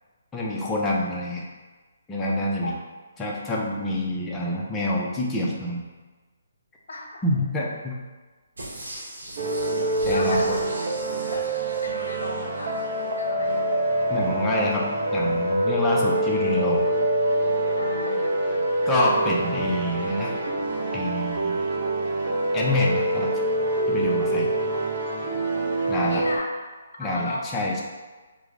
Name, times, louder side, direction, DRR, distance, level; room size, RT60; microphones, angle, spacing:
voice 1, 0.3-1.4 2.1-2.7 3.2-5.8 7.2-7.9 10.0-10.6 14.1-14.9 15.1-16.8 18.9-20.4 20.9-21.6 22.5-23.3 23.9-24.5 25.9-26.2 27.0-27.8, left 1 dB, 10° left, -4 dB, 0.4 m, -26 dB
voice 2, 6.9-7.2 10.1-10.7 11.3-11.4 11.8-13.7 17.8-18.4 26.0-26.5 27.0-27.5, left 2 dB, 75° left, 1 dB, 0.6 m, -35 dB
sound 1, 8.6-13.0 13.4-13.5, right 1 dB, 85° right, 1.0 m, -40 dB
sound 2, 9.4-26.4, right 1 dB, 45° right, 0.5 m, -25 dB
3.2 x 2.0 x 3.7 m, 1.3 s
hypercardioid pair, 165°, 0 cm